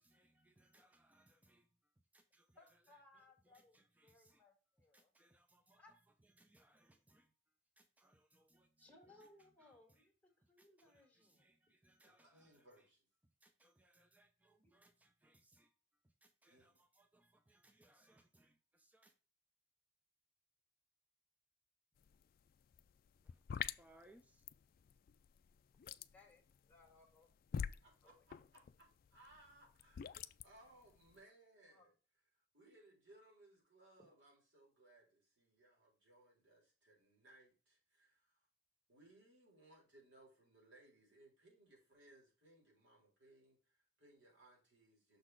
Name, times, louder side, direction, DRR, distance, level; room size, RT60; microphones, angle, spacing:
voice 1, 0.0-1.7 2.4-2.8 3.2-4.4 4.9-5.8 6.2-7.3 7.8-10.1 10.6-12.9 13.2-15.7 16.0-19.1 23.2-23.4 23.8-24.5, right 1 dB, 10° right, 0.5 m, -71 dB
voice 2, 2.5-5.1 5.8-5.9 8.8-10.1 10.5-11.5 14.6-14.8 26.1-27.3 28.0-28.2 31.7-31.9, left 2 dB, 10° left, 1.8 m, -66 dB
voice 3, 12.0-13.1 16.5-16.8 27.8-31.9 32.3-38.5 38.9-45.2, right 1 dB, 90° right, 3.9 m, -66 dB
sound 1, 22.0-22.2 22.5-31.2, left 8 dB, 50° left, 0.3 m, -46 dB
6.4 x 4.1 x 4.6 m
head